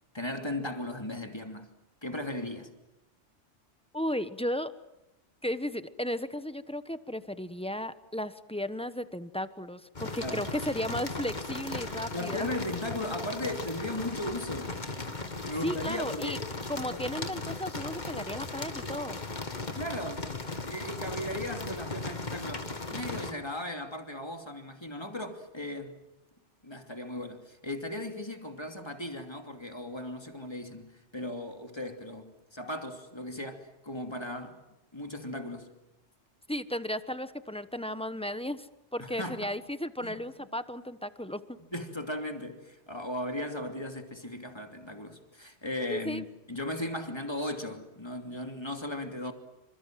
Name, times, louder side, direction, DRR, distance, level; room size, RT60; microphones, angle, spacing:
voice 1, 0.1-1.7 2.0-2.7 10.2-10.4 12.1-14.8 15.5-16.5 16.9-17.0 19.5-20.3 20.6-25.9 26.6-34.6 34.9-35.7 39.0-39.5 40.0-40.2 41.7-49.3, left 1 dB, 25° left, 2.9 m, -37 dB
voice 2, 3.9-4.7 5.4-12.5 15.6-16.4 16.7-19.2 36.5-38.7 38.9-41.6 45.9-46.2, left 1 dB, 5° left, 1.1 m, -34 dB
sound 1, 9.9-23.3, left 3 dB, 40° left, 2.1 m, -37 dB
28.5 x 26.5 x 7.6 m
omnidirectional pair, 1.2 m